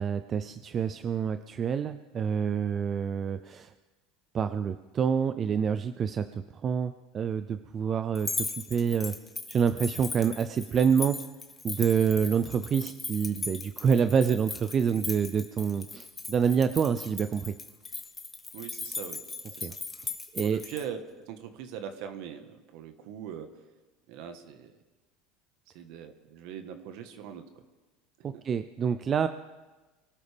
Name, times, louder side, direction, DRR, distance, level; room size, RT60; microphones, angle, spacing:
voice 1, 0.0-3.7 4.3-9.1 9.5-11.1 11.6-17.5 19.6-19.7 20.0-20.6 28.2-29.3, right 7 dB, 30° right, 11 dB, 0.5 m, -27 dB
sound 1, 8.1-20.8, left 3 dB, 15° left, 1.4 m, -38 dB
voice 2, 18.5-19.2 19.6-19.8 20.4-23.5 24.1-24.8 25.7-27.6 28.3-28.4, right 8 dB, 65° right, 7 dB, 1.5 m, -41 dB
24.0 x 12.5 x 3.5 m, 1.2 s
supercardioid pair, 120°, 0 cm